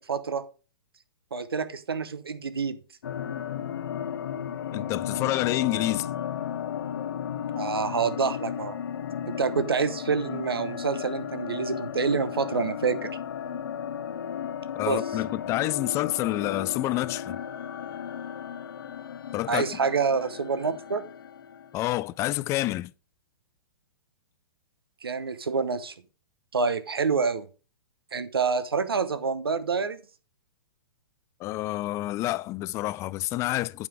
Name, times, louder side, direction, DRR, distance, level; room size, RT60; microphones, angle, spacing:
voice 1, 0.1-0.4 1.3-2.8 7.6-8.8 9.3-13.1 14.9-15.0 19.5-21.0 25.0-25.9 26.5-27.5 28.1-30.0, right 5 dB, 85° right, 0.9 m, -27 dB
sound 1, 3.0-22.0, left 8 dB, 65° left, 0.9 m, -34 dB
voice 2, 4.7-6.1 14.7-17.4 19.3-19.6 21.7-22.9 31.4-33.9, left 17 dB, 25° left, 0.3 m, -28 dB
8.4 x 5.2 x 4.8 m
hypercardioid pair, 120°, 12 cm